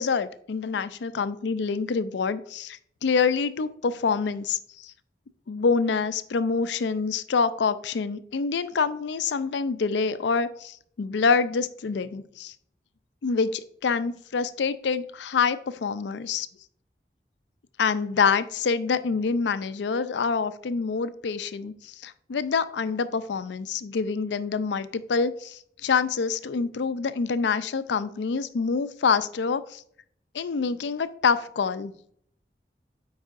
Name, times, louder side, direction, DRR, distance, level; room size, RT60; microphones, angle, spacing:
voice 1, 0.0-4.9 5.5-12.5 13.2-16.5 17.8-29.8 30.3-31.9, left 5 dB, 85° left, 14 dB, 0.4 m, -26 dB
8.0 x 4.8 x 2.5 m, 0.64 s
head